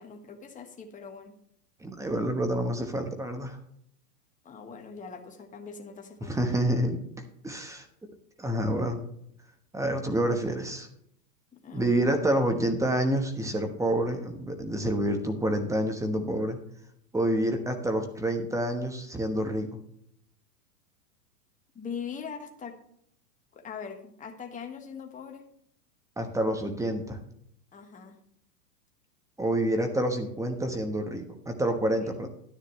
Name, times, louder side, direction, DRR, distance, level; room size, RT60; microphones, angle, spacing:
voice 1, 0.0-1.4 4.4-6.7 11.5-12.1 21.7-22.8 23.5-25.5 27.7-28.2 31.9-32.3, left 6 dB, 15° left, 4 dB, 1.5 m, -42 dB
voice 2, 1.8-3.6 6.3-7.0 7.4-7.8 8.4-9.0 9.7-10.9 11.7-16.6 17.1-19.8 26.2-27.2 29.4-32.3, right 1 dB, 5° right, 5 dB, 1.1 m, -28 dB
11.5 x 10.0 x 3.2 m, 0.69 s
hypercardioid pair, 120°, 48 cm